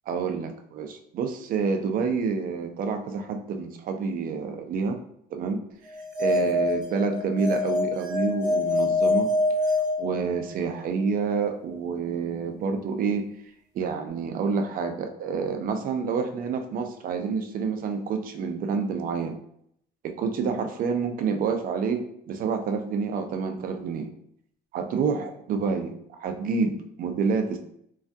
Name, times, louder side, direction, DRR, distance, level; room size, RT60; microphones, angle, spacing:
voice 1, 0.1-5.0 5.3-5.6 6.2-9.3 10.0-13.3 13.7-19.4 20.0-24.1 24.7-25.9 26.2-27.6, right 5 dB, 55° right, 6 dB, 0.5 m, -28 dB
sound 1, 5.9-10.8, left 2 dB, 25° right, 1.2 m, -25 dB
3.3 x 2.3 x 2.6 m, 0.70 s
cardioid pair, 110°, 17 cm